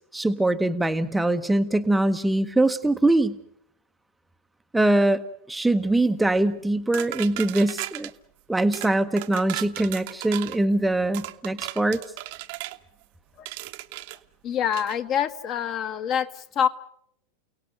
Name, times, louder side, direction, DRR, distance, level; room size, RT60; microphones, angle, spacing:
voice 1, 0.0-3.4 4.7-5.2 5.5-8.1 8.5-12.0, right 2 dB, 5° right, 7 dB, 0.9 m, -22 dB
sound 1, 6.9-8.1 8.7-8.9 9.2-10.6 11.1-12.8 13.5-14.2 14.7-15.0, right 18 dB, 50° right, 1.1 m, -35 dB
voice 2, 14.4-16.7, left 8 dB, 35° left, 9 dB, 1.4 m, -26 dB
29.5 x 18.0 x 7.9 m, 0.72 s
figure-of-eight pair, 90°, 0 cm